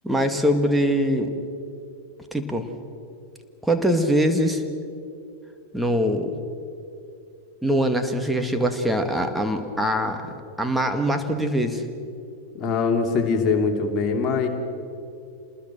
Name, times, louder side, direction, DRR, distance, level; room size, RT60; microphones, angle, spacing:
voice 1, 0.0-1.3 2.3-2.7 3.6-4.6 5.7-6.3 7.6-10.3 10.6-11.8, equal, 5° right, 5 dB, 2.1 m, -22 dB
voice 2, 12.5-14.5, left 4 dB, 30° left, 3 dB, 2.9 m, -22 dB
27.5 x 20.0 x 6.2 m, 2.5 s
figure-of-eight pair, 90°, 0 cm